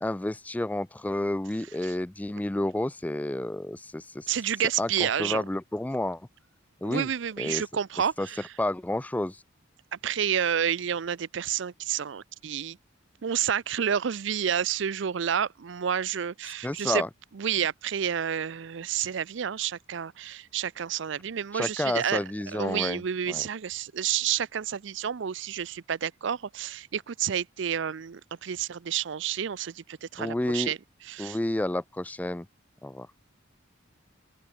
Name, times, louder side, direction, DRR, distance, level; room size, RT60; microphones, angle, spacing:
voice 1, 0.0-4.3 4.8-6.2 6.8-7.1 7.4-7.6 8.2-8.3 8.6-9.4 16.6-17.1 21.5-23.0 23.3-23.4 30.2-30.7 31.2-32.5 32.8-33.1, left 1 dB, 10° left, 0.3 m, -30 dB
voice 2, 4.3-5.4 6.8-8.5 9.9-12.8 13.2-17.0 17.3-22.2 22.5-30.8 31.1-31.4, right 8 dB, 65° right, 0.5 m, -30 dB
open air
head